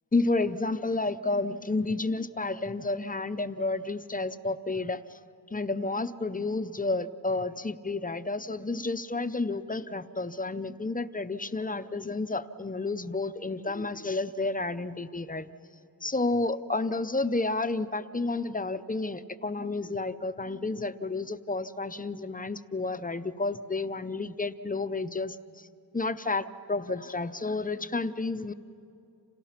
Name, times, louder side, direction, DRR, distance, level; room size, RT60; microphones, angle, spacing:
voice 1, 0.1-5.2 5.5-15.5 16.0-25.7 25.9-28.5, left 3 dB, 20° left, 11 dB, 0.6 m, -31 dB
30.0 x 27.5 x 5.9 m, 2.7 s
wide cardioid pair, 130°, 40 cm